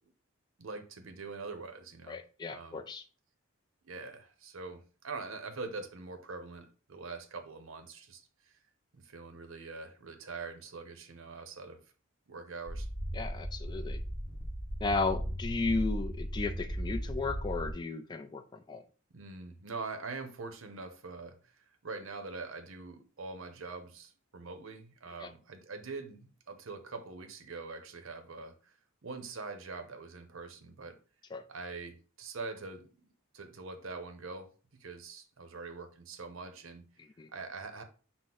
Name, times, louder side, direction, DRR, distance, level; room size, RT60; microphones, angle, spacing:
voice 1, 0.6-2.2 2.5-2.8 3.8-8.6 8.9-11.8 12.3-12.9 19.1-28.7 29.0-31.0 31.5-33.1 33.3-34.5 34.8-36.9 37.3-37.8, right 4 dB, 70° right, 0.7 m, -44 dB
voice 2, 2.1-3.0 13.1-14.0 14.8-18.4 18.7-18.8 25.2-25.3 31.3-31.4 37.2-37.3, left 3 dB, 20° left, 0.3 m, -34 dB
sound 1, 12.7-17.7, equal, 35° left, 1.2 m, -37 dB
5.9 x 2.1 x 3.7 m
head